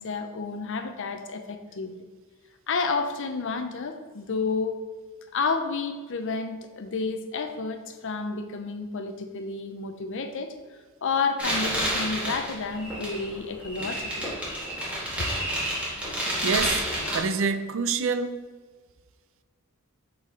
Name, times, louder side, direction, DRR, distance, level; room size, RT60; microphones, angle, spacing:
voice 1, 0.0-2.1 2.7-4.8 5.3-10.5 11.0-14.3 15.2-15.3, left 4 dB, 60° left, 0.6 m, -30 dB
sound 1, 11.4-17.2, equal, 5° right, 1.7 m, -30 dB
voice 2, 16.4-16.9 17.1-18.5, right 5 dB, 60° right, 0.5 m, -26 dB
7.3 x 4.2 x 4.4 m
head